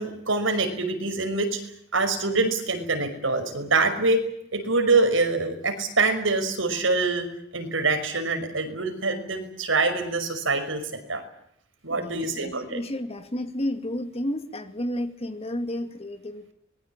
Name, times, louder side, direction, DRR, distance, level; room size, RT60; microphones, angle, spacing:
voice 1, 0.0-1.6 1.9-4.2 4.5-7.3 7.5-11.2 11.8-12.8, right 3 dB, 75° right, 6 dB, 5.7 m, -25 dB
voice 2, 11.9-16.5, left 1 dB, 30° left, 8 dB, 2.2 m, -32 dB
25.0 x 21.0 x 8.9 m, 0.73 s
head